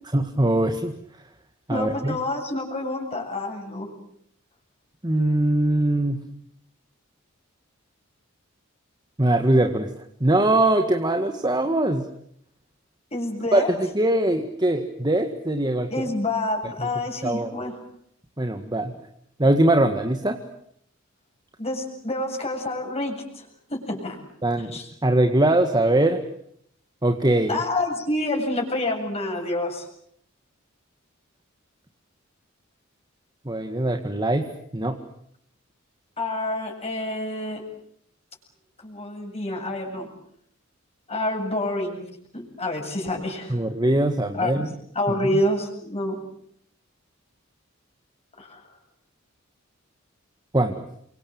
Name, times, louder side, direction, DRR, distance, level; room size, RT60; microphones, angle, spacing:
voice 1, 0.1-0.9 1.7-2.1 5.0-6.2 9.2-9.9 10.2-12.0 13.5-16.1 16.8-16.9 17.2-17.5 18.4-18.9 19.4-20.4 24.4-24.7 25.0-26.2 27.0-27.6 33.5-34.4 34.7-34.9 43.5-44.7 50.5-50.7, right 1 dB, 20° right, 5 dB, 1.9 m, -21 dB
voice 2, 1.7-3.9 13.1-13.7 15.9-17.8 21.6-24.2 24.6-24.9 27.5-29.9 36.2-37.6 38.8-40.1 41.1-42.1 42.3-43.6 44.3-44.7 44.9-46.2 48.4-48.6, left 1 dB, 30° left, 1 dB, 7.8 m, -28 dB
29.5 x 25.0 x 7.9 m, 0.70 s
head